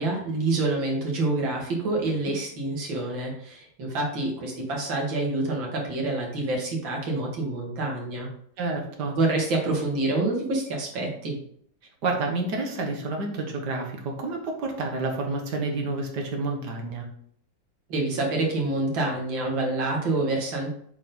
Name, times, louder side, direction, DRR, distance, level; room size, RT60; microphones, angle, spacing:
voice 1, 0.0-8.3 9.2-11.4 17.9-20.7, right 2 dB, 85° right, -1 dB, 2.5 m, -27 dB
voice 2, 8.6-9.2 12.0-17.1, right 3 dB, 65° right, 2 dB, 1.9 m, -29 dB
7.2 x 4.4 x 3.9 m, 0.65 s
omnidirectional pair, 2.0 m